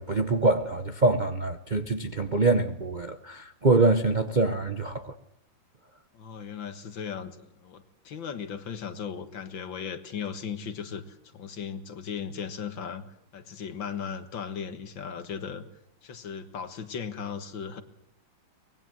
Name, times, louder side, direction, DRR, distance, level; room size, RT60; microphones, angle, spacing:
voice 1, 0.0-5.1, right 3 dB, 40° right, 0.7 m, -25 dB
voice 2, 6.1-13.0 13.3-15.7 16.0-17.8, left 7 dB, 70° left, 2.3 m, -37 dB
24.0 x 20.5 x 7.6 m
omnidirectional pair, 2.2 m